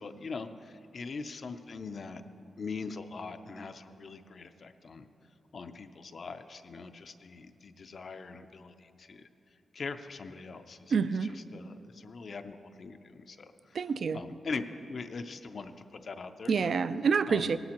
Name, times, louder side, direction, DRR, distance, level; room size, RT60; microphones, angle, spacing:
voice 1, 0.0-2.2 2.6-5.1 5.5-9.3 9.7-10.9 11.2-13.8 14.1-15.7 16.0-16.7 17.3-17.5, left 4 dB, 50° left, 8 dB, 0.5 m, -42 dB
voice 2, 10.9-11.4 13.7-14.2 16.5-17.6, right 5 dB, 60° right, 14 dB, 0.3 m, -27 dB
16.5 x 11.5 x 2.9 m, 2.7 s
wide cardioid pair, 130°, 0 cm